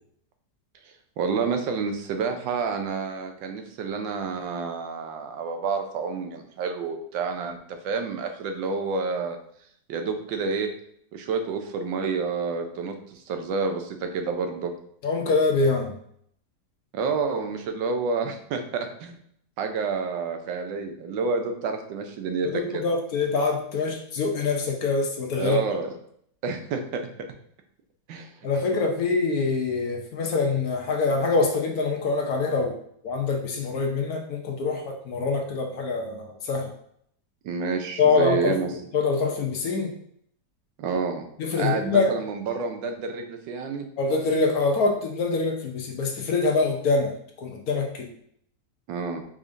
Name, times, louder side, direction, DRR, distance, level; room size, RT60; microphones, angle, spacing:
voice 1, 1.2-9.4 9.9-10.7 11.1-14.7 16.9-19.2 19.6-22.8 25.4-25.9 26.4-27.0 28.1-28.3 37.4-38.7 40.8-41.3 41.6-43.9 48.9-49.2, right 5 dB, 90° right, 6 dB, 1.4 m, -29 dB
voice 2, 15.0-15.9 22.4-25.6 28.4-32.8 33.0-36.7 38.0-38.6 38.9-39.9 41.4-42.1 44.0-47.1 47.4-48.1, left 4 dB, 65° left, 2 dB, 1.1 m, -24 dB
4.9 x 4.2 x 2.5 m, 0.67 s
omnidirectional pair, 1.9 m